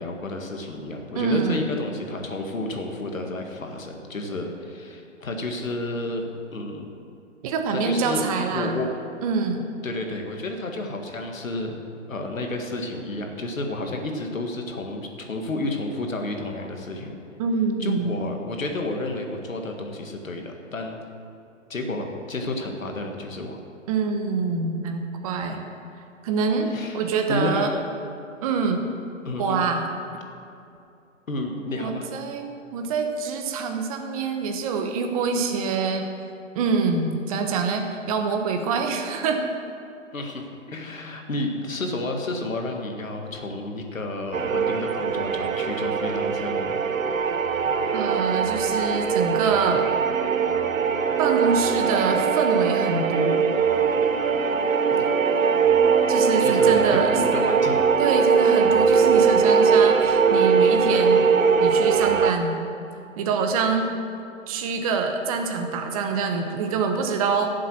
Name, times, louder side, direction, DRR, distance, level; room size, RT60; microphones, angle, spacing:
voice 1, 0.0-6.9 7.7-8.2 8.5-8.9 9.8-11.7 12.1-17.2 17.8-21.0 21.7-23.6 26.7-27.0 27.3-27.8 29.3-29.7 31.3-32.1 40.1-46.8 54.9-55.1 55.4-55.5 56.4-57.8, left 2 dB, 85° left, 3 dB, 2.0 m, -31 dB
voice 2, 1.1-1.6 7.4-8.8 9.2-9.6 17.4-18.2 23.9-25.6 26.2-26.7 26.9-27.7 28.4-28.9 29.4-29.9 31.7-36.1 36.5-39.4 47.9-49.9 51.2-53.4 56.1-57.2 58.0-61.3 61.6-62.5 63.2-63.9 64.5-67.5, right 5 dB, 25° right, 4 dB, 1.1 m, -25 dB
sound 1, 44.3-62.3, right 6 dB, 80° right, 1.0 m, -21 dB
13.5 x 7.5 x 6.2 m, 2.7 s
hypercardioid pair, 145°, 39 cm